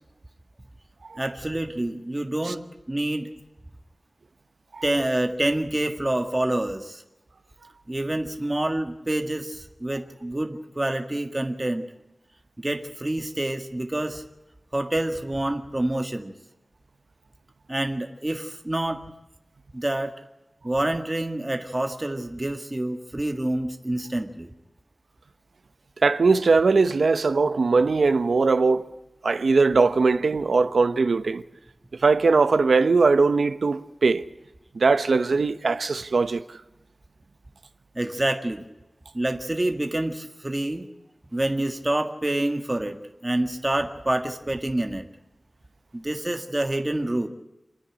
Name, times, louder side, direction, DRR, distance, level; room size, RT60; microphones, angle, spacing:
voice 1, 1.2-3.3 4.8-7.0 7.9-11.9 12.6-14.2 14.7-16.3 17.7-19.0 19.7-20.1 20.6-24.5 38.0-38.6 39.1-40.9 41.3-43.0 43.2-45.0 45.9-47.3, right 1 dB, 20° right, 1.8 m, -27 dB
voice 2, 26.0-28.8 29.2-31.4 32.0-34.2 34.7-36.4, right 4 dB, 85° right, 1.0 m, -20 dB
27.5 x 10.0 x 9.9 m
wide cardioid pair, 85°, 0 cm